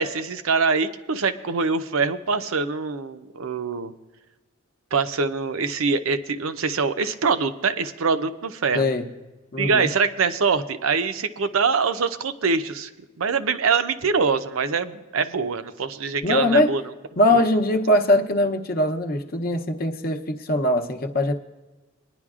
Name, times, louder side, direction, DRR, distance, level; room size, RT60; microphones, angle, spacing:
voice 1, 0.0-3.9 4.9-8.9 9.6-12.9 13.2-16.8 17.3-17.4, right 5 dB, 85° right, 11 dB, 0.6 m, -24 dB
voice 2, 8.7-9.1 9.5-9.9 16.2-16.7 17.2-21.3, left 1 dB, 45° left, 6 dB, 0.7 m, -21 dB
21.5 x 10.5 x 2.4 m, 1.2 s
head